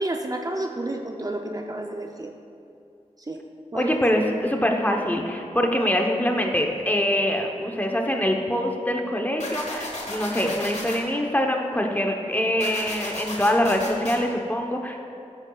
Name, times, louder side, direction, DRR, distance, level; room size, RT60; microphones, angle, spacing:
voice 1, 0.0-2.3 3.2-3.4 3.7-4.0, right 1 dB, 30° right, 3 dB, 0.6 m, -30 dB
voice 2, 3.7-15.0, equal, 15° left, 2 dB, 1.0 m, -24 dB
sound 1, 9.4-11.0 12.6-14.2, left 2 dB, 65° left, 1.3 m, -34 dB
12.5 x 8.8 x 2.4 m, 2.7 s
wide cardioid pair, 50°, 12 cm